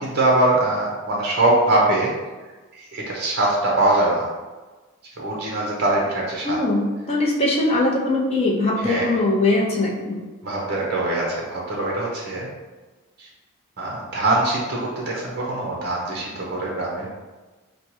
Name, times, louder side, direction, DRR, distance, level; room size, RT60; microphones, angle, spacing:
voice 1, 0.0-2.1 2.7-4.3 5.2-6.6 8.8-9.0 10.4-12.5 13.2-13.3 13.8-17.1, right 2 dB, 45° right, -3 dB, 0.6 m, -22 dB
voice 2, 6.4-10.2, left 2 dB, 30° left, -4 dB, 0.6 m, -21 dB
4.4 x 2.2 x 2.9 m, 1.2 s
head